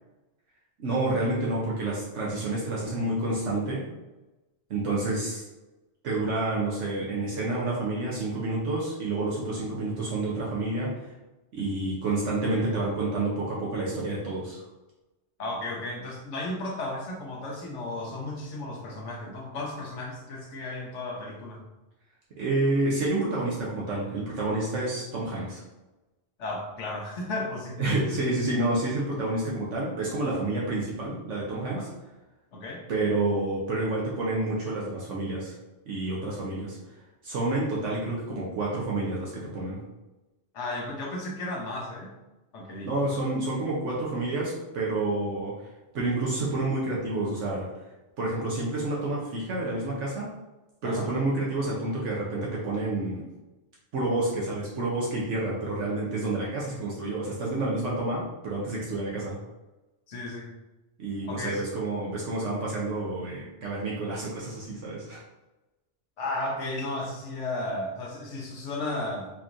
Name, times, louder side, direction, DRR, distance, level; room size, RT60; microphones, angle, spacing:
voice 1, 0.8-3.8 4.7-5.4 6.0-11.1 11.5-14.6 22.4-25.6 27.8-31.9 32.9-35.5 35.9-36.8 37.2-39.8 42.8-45.7 45.9-47.7 48.2-50.3 50.8-53.3 53.9-59.4 61.0-65.2, right 2 dB, 70° right, -5 dB, 1.1 m, -29 dB
voice 2, 15.4-21.6 26.4-27.8 31.7-31.9 32.5-32.8 40.5-42.1 42.5-42.9 50.8-51.1 60.1-60.5 61.3-61.6 66.2-69.3, left 2 dB, 70° left, 0 dB, 1.2 m, -34 dB
4.3 x 2.9 x 2.5 m, 1.1 s
omnidirectional pair, 1.3 m